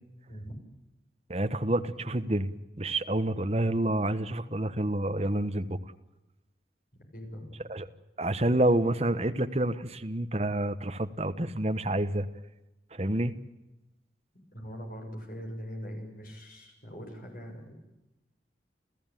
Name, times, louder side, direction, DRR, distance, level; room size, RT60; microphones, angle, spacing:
voice 1, 1.3-5.8 7.7-7.9 8.2-12.3 12.9-13.4, right 1 dB, 35° right, 8 dB, 1.2 m, -28 dB
voice 2, 7.1-7.6 14.5-17.7, equal, 50° left, 3 dB, 7.3 m, -42 dB
29.5 x 15.0 x 9.2 m, 0.98 s
head